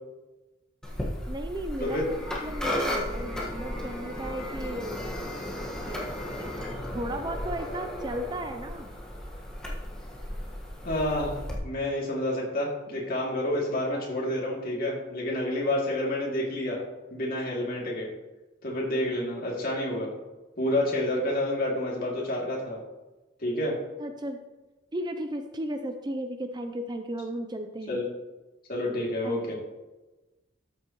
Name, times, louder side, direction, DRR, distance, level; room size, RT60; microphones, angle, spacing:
sound 1, 0.8-11.5, left 1 dB, 5° left, 1.4 m, -34 dB
voice 1, 1.3-5.1 5.9-6.1 6.4-6.5 6.9-8.9 24.0-24.4 24.9-28.0 28.8-28.9 29.2-29.5, right 1 dB, 20° right, 6 dB, 0.5 m, -35 dB
voice 2, 10.8-16.8 17.1-18.1 18.6-20.1 20.6-22.8 23.4-23.8 27.9-28.0 28.7-29.5, left 1 dB, 50° left, -4 dB, 2.6 m, -29 dB
13.0 x 7.1 x 3.0 m, 1.1 s
head